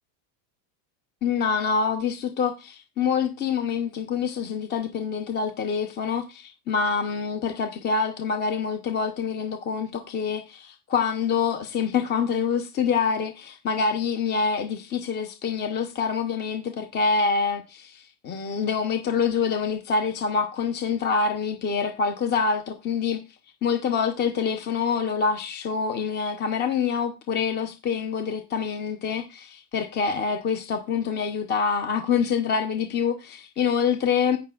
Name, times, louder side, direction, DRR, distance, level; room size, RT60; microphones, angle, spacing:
voice 1, 1.2-23.2 23.6-34.4, left 6 dB, 25° left, 0.8 m, -26 dB
16.5 x 5.9 x 2.4 m
cardioid pair, 160°, 41 cm